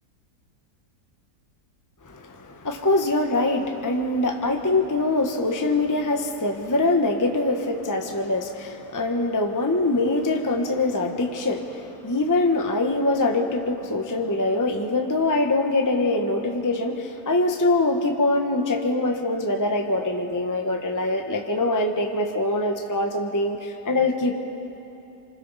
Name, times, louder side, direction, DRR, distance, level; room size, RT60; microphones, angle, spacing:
voice 1, 2.1-24.3, left 2 dB, 15° left, 3 dB, 0.9 m, -23 dB
26.5 x 26.0 x 4.1 m, 2.9 s
omnidirectional pair, 1.7 m